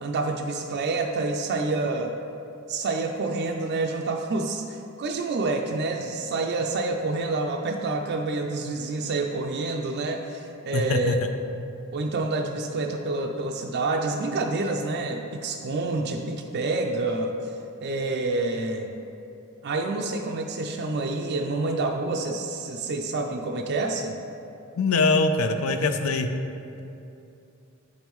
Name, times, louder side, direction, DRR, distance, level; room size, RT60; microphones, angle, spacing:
voice 1, 0.0-2.1 2.7-11.2 11.9-17.3 17.8-18.9 19.6-24.2, right 3 dB, 50° right, 2 dB, 0.4 m, -28 dB
voice 2, 10.7-11.1 24.8-26.3, left 3 dB, 75° left, 7 dB, 0.5 m, -23 dB
8.4 x 5.3 x 3.0 m, 2.7 s
head